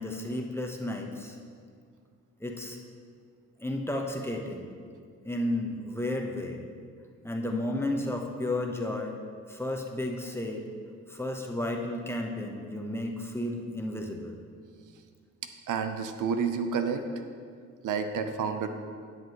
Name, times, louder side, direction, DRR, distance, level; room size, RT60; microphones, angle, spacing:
voice 1, 0.0-1.4 2.4-2.8 3.6-4.7 5.2-6.6 7.2-9.1 9.5-10.7 11.1-14.4, left 1 dB, 10° left, 1 dB, 1.0 m, -32 dB
voice 2, 15.7-17.0 17.8-18.7, right 6 dB, 75° right, 7 dB, 0.7 m, -29 dB
11.0 x 7.5 x 3.0 m, 2.1 s
cardioid pair, 80°, 31 cm